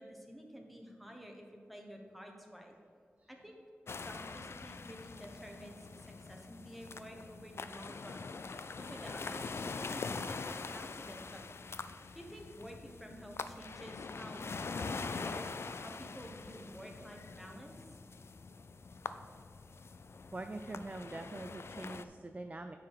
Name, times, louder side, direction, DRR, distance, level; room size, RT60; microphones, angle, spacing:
voice 1, 0.0-2.7 3.3-3.6 4.0-8.3 8.5-9.4 9.8-11.5 12.1-15.5 15.7-17.8, equal, ahead, 1 dB, 1.2 m, -51 dB
sound 1, 3.9-22.0, left 4 dB, 65° left, 0.3 m, -44 dB
voice 2, 20.3-22.8, right 2 dB, 30° right, 7 dB, 0.4 m, -44 dB
9.1 x 4.8 x 4.8 m, 2.2 s
wide cardioid pair, 75°, 5 cm